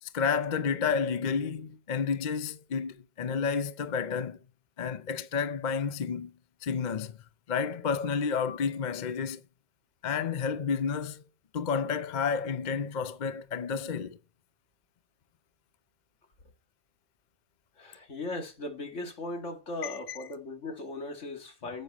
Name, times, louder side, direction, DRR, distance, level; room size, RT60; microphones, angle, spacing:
voice 1, 0.0-4.4 4.8-6.3 6.6-7.2 7.5-9.4 10.0-11.2 11.5-14.2 19.8-20.2, left 6 dB, 45° left, 0.7 m, -30 dB
voice 2, 17.8-21.8, left 2 dB, 75° left, 2.4 m, -38 dB
9.8 x 8.7 x 4.2 m
omnidirectional pair, 1.3 m